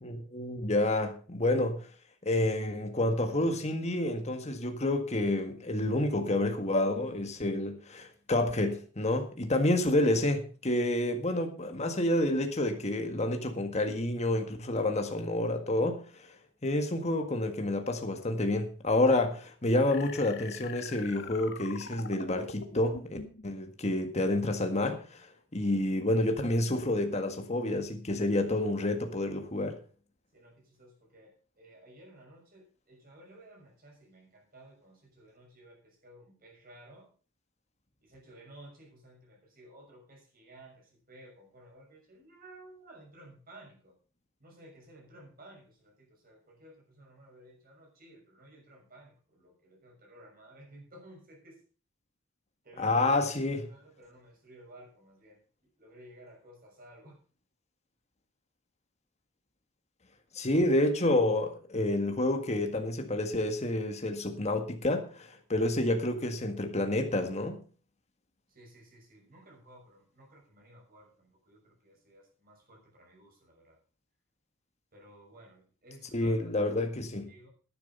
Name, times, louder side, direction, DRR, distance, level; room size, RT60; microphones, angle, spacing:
voice 1, 0.0-1.9 2.2-16.0 16.6-23.2 23.4-25.3 25.5-29.8 52.8-53.7 60.3-67.6 76.1-77.3, left 1 dB, 35° left, 1.7 m, -29 dB
sound 1, 19.9-23.4, left 5 dB, 55° left, 1.3 m, -44 dB
voice 2, 30.3-37.1 38.0-44.0 44.4-51.6 52.6-53.2 53.5-55.4 55.8-57.2 68.5-73.8 74.9-76.4 77.3-77.5, right 1 dB, 45° right, 6.2 m, -55 dB
11.5 x 10.5 x 5.5 m
head